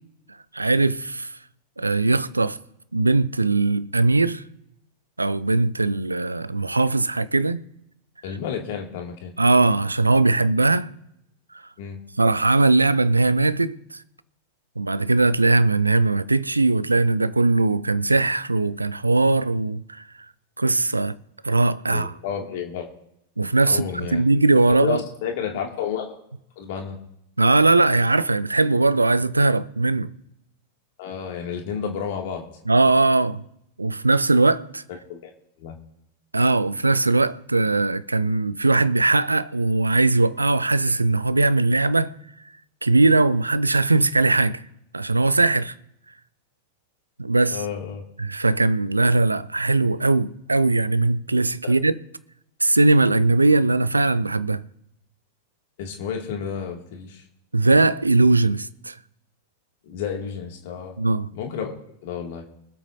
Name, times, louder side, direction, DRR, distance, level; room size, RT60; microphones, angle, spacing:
voice 1, 0.5-1.3 1.8-2.6 2.9-4.4 5.2-7.6 9.4-10.9 12.2-13.8 14.8-20.0 20.6-21.2 21.4-22.1 23.4-25.0 27.4-30.1 32.7-33.4 33.8-34.8 36.3-42.1 42.8-44.6 44.9-45.7 47.2-47.6 48.2-52.0 52.6-54.6 57.5-58.9 61.0-61.3, right 2 dB, 80° right, 0.6 m, -20 dB
voice 2, 8.2-9.3 11.8-12.0 21.9-22.9 23.7-24.2 24.8-26.2 26.6-27.0 31.0-32.4 34.9-35.3 35.6-35.7 47.5-48.0 51.6-51.7 55.8-57.2 59.9-61.0 61.3-61.7 62.0-62.4, left 7 dB, 50° left, 2.3 m, -31 dB
24.5 x 8.2 x 2.7 m
figure-of-eight pair, 90°, 0 cm